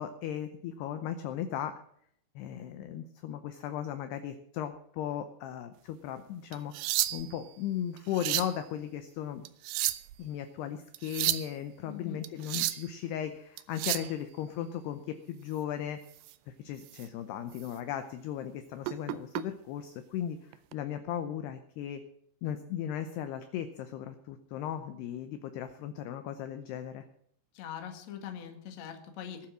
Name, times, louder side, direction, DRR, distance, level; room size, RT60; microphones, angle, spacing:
voice 1, 0.0-1.7 2.4-6.7 7.1-9.4 10.2-16.0 16.5-22.0 22.4-27.1, left 10 dB, 75° left, 9 dB, 2.5 m, -37 dB
sound 1, 6.5-7.4 8.0-8.6 9.4-10.2 10.9-11.5 12.2-12.9 13.6-14.1 16.2-16.3 16.8-17.1 17.5-17.7 18.8-19.4 20.5-20.7, right 16 dB, 85° right, 2.4 m, -32 dB
voice 2, 11.9-12.2 27.5-29.5, left 9 dB, 50° left, 5 dB, 2.1 m, -42 dB
21.0 x 7.5 x 6.3 m, 0.68 s
omnidirectional pair, 5.6 m